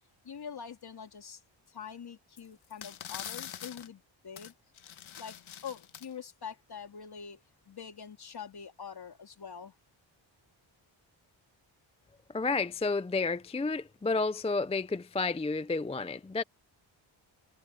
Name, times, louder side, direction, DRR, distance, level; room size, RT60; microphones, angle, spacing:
voice 1, 0.2-1.4 1.7-4.5 5.2-5.4 5.6-7.4 7.7-9.7, left 7 dB, 50° left, 3.3 m, -44 dB
sound 1, 2.4-2.5 2.7-3.9 4.4-4.5 4.8-6.1, left 10 dB, 80° left, 1.2 m, -44 dB
voice 2, 12.3-16.4, left 3 dB, 15° left, 0.4 m, -31 dB
wide cardioid pair, 160°, 47 cm